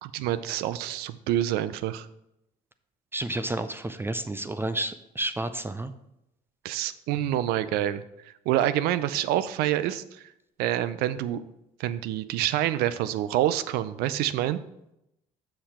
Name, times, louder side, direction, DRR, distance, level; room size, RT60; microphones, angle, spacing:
voice 1, 0.0-2.1 6.6-10.3 10.6-11.5 11.8-14.6, right 12 dB, 80° right, 14 dB, 0.5 m, -27 dB
voice 2, 3.1-5.9, right 1 dB, 15° right, 11 dB, 0.4 m, -31 dB
6.7 x 5.7 x 4.3 m, 0.84 s
supercardioid pair, 80°, 16 cm